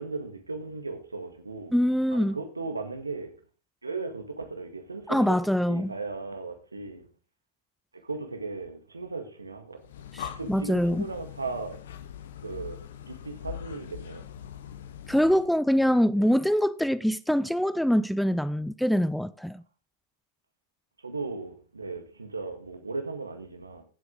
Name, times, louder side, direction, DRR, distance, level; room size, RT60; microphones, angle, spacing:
voice 1, 0.0-1.7 2.1-3.3 3.8-5.4 5.7-7.1 8.0-9.8 10.4-11.8 12.4-14.3 21.0-23.8, right 3 dB, 80° right, 1.8 m, -36 dB
voice 2, 1.7-2.4 5.1-6.0 10.1-11.1 15.1-19.6, equal, ahead, 0.4 m, -24 dB
Breathing, 9.8-15.6, left 9 dB, 60° left, 1.0 m, -42 dB
15.5 x 7.9 x 3.8 m
figure-of-eight pair, 90°, 0 cm